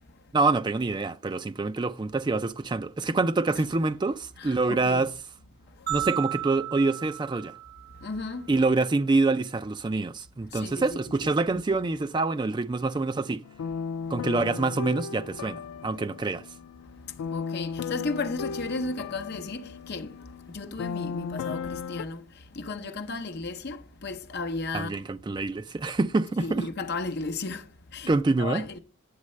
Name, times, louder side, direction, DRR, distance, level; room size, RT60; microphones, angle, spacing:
voice 1, 0.3-5.1 5.9-7.5 8.5-13.4 14.1-16.4 24.7-26.7 28.1-28.6, right 3 dB, 20° right, 0.3 m, -26 dB
voice 2, 4.4-5.1 5.8-6.0 8.0-8.5 10.5-11.0 14.0-14.2 16.9-24.9 26.4-28.1 28.4-28.8, left 3 dB, 50° left, 0.7 m, -35 dB
sound 1, 5.9-8.2, right 13 dB, 45° right, 1.1 m, -34 dB
sound 2, 13.4-22.0, left 6 dB, 85° left, 0.3 m, -36 dB
9.6 x 7.4 x 3.1 m
head